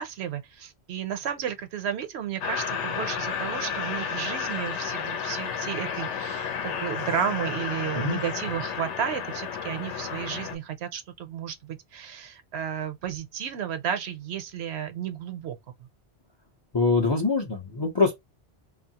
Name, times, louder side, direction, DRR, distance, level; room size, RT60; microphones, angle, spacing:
voice 1, 0.0-15.6, right 9 dB, 75° right, 0.8 m, -33 dB
sound 1, 2.4-10.6, left 7 dB, 85° left, 0.9 m, -32 dB
voice 2, 16.7-18.1, left 3 dB, 35° left, 0.4 m, -24 dB
2.6 x 2.3 x 2.7 m
omnidirectional pair, 1.1 m